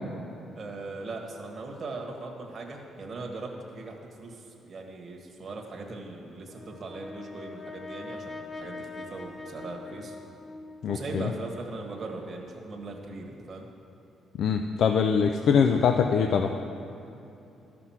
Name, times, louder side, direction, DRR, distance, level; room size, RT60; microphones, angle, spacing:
voice 1, 0.6-10.2 10.9-13.7, right 3 dB, 45° right, 1 dB, 1.4 m, -39 dB
Brass instrument, 6.5-10.9, left 3 dB, 30° left, 1.0 m, -42 dB
voice 2, 10.8-11.3 14.4-16.5, left 6 dB, 65° left, 5 dB, 0.4 m, -23 dB
12.5 x 6.0 x 5.8 m, 2.9 s
cardioid pair, 90°, 0 cm